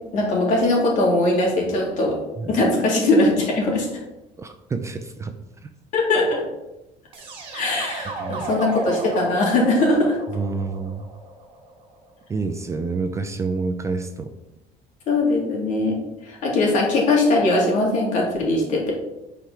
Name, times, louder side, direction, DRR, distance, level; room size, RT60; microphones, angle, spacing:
voice 1, 0.1-2.2 2.5-3.9 5.9-6.4 7.5-10.2 15.1-16.0 16.2-19.0, left 2 dB, 55° left, -2 dB, 3.2 m, -20 dB
voice 2, 4.4-5.3 5.6-5.7 8.2-8.5 10.3-11.1 12.3-14.3, right 4 dB, 20° right, 7 dB, 0.5 m, -28 dB
sound 1, 7.1-12.0, right 2 dB, 35° right, 2.1 m, -34 dB
9.2 x 5.0 x 5.8 m, 0.98 s
cardioid pair, 160°, 16 cm